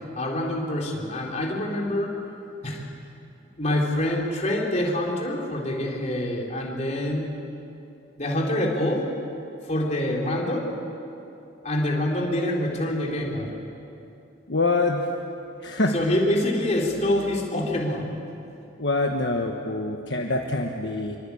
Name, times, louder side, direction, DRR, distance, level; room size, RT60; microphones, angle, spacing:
voice 1, 0.2-2.2 2.6-2.8 3.6-7.3 8.2-9.0 9.6-10.8 11.6-13.5 15.9-18.1, left 1 dB, 35° left, -2 dB, 4.1 m, -26 dB
voice 2, 14.5-15.1 15.6-15.9 18.8-21.2, left 2 dB, 55° left, 2 dB, 1.4 m, -25 dB
26.0 x 24.5 x 8.6 m, 2.8 s
head